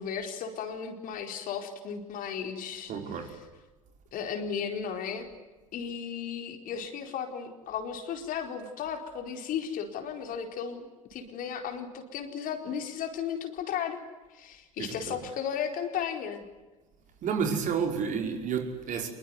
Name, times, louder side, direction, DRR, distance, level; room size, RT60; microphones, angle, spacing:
voice 1, 0.0-3.3 4.1-5.3 5.7-14.0 14.3-16.4, left 7 dB, 50° left, 5 dB, 4.5 m, -35 dB
voice 2, 2.9-3.4 14.8-15.2 17.2-19.1, right 6 dB, 45° right, 4 dB, 5.6 m, -30 dB
26.5 x 22.5 x 9.7 m, 1.2 s
hypercardioid pair, 75°, 18 cm